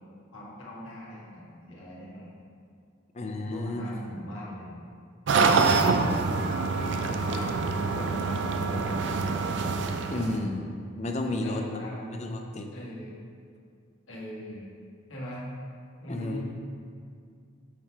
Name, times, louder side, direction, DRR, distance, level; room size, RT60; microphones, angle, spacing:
voice 1, 0.3-2.5 3.4-4.8 5.4-6.5 7.3-9.3 11.4-12.2 12.7-13.1 14.1-14.7 15.1-15.5 16.0-16.4, equal, 90° left, -6 dB, 1.6 m, -41 dB
voice 2, 3.1-3.9 10.1-10.7 11.0-12.7 16.1-16.4, left 2 dB, 35° left, 3 dB, 0.5 m, -32 dB
sound 1, 5.3-10.4, right 4 dB, 65° right, 0.4 m, -25 dB
6.4 x 3.8 x 4.6 m, 2.3 s
head